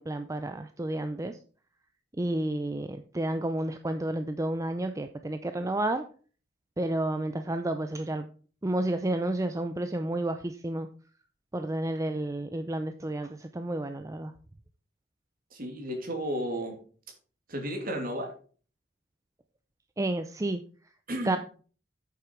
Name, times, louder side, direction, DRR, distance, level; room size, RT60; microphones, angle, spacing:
voice 1, 0.0-1.4 2.2-6.0 6.8-8.3 8.6-10.9 11.5-14.3 20.0-20.6 21.2-21.4, right 1 dB, 15° right, 8 dB, 0.5 m, -31 dB
voice 2, 15.5-16.8 17.5-18.3 21.1-21.4, equal, 50° right, 3 dB, 2.7 m, -33 dB
8.5 x 7.0 x 4.5 m, 0.40 s
head